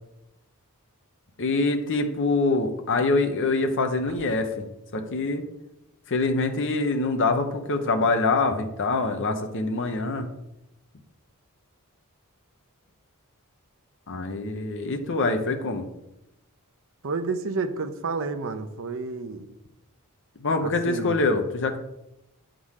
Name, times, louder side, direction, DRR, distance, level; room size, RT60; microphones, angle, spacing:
voice 1, 1.4-4.6 4.9-5.4 6.1-10.3 14.1-15.8 20.4-21.8, left 3 dB, 60° left, 6 dB, 0.8 m, -25 dB
voice 2, 17.0-19.5 20.6-21.2, right 4 dB, 60° right, 7 dB, 0.7 m, -30 dB
8.5 x 3.8 x 6.4 m, 0.88 s
head